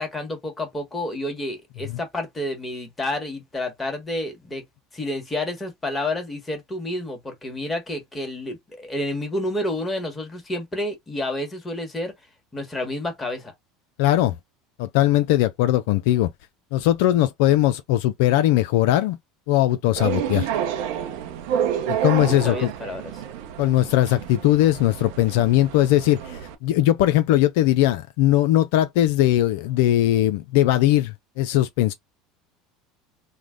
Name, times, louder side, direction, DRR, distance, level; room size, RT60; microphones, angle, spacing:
voice 1, 0.0-4.6 4.9-12.1 12.5-13.5 22.4-23.1, left 1 dB, 15° left, 1.5 m, -29 dB
voice 2, 14.0-14.4 14.8-16.3 16.7-19.2 19.5-20.5 21.9-22.7 23.6-31.9, left 14 dB, 75° left, 0.3 m, -20 dB
sound 1, 20.0-26.5, right 9 dB, 70° right, 0.7 m, -29 dB
3.2 x 2.1 x 3.7 m
hypercardioid pair, 85°, 0 cm